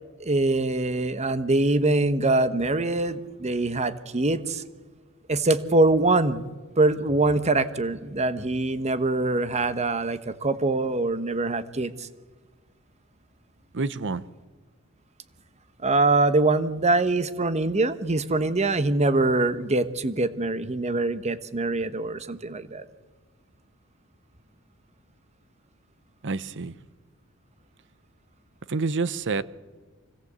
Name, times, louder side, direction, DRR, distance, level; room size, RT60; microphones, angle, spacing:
voice 1, 0.2-4.6 5.3-6.4 6.8-12.1 15.8-22.8, right 2 dB, 30° right, 1.0 m, -24 dB
voice 2, 13.7-14.2 26.2-26.8 28.7-29.4, right 4 dB, 55° right, 0.8 m, -28 dB
25.0 x 17.0 x 8.1 m
head